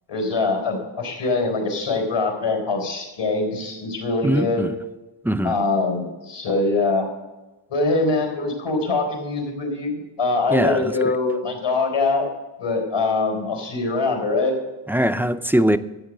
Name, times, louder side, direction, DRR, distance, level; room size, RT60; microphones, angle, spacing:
voice 1, 0.1-4.7 5.4-7.1 7.7-12.3 12.6-14.5, left 3 dB, 90° left, 4.3 m, -23 dB
voice 2, 4.2-4.8 5.2-5.6 10.5-10.9 14.9-15.8, equal, 5° right, 0.3 m, -21 dB
13.5 x 8.1 x 6.5 m
wide cardioid pair, 110°, 49 cm